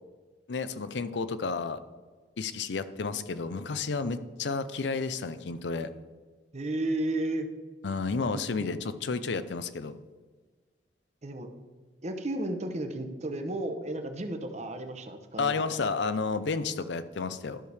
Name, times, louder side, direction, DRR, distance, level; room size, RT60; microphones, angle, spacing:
voice 1, 0.5-1.8 2.4-5.9 7.8-10.0 15.4-17.6, left 4 dB, 75° left, 12 dB, 0.5 m, -31 dB
voice 2, 6.5-7.5 8.3-8.8 11.2-11.5 12.0-15.8, right 1 dB, 40° right, 7 dB, 0.8 m, -33 dB
12.0 x 6.4 x 3.4 m, 1.4 s
head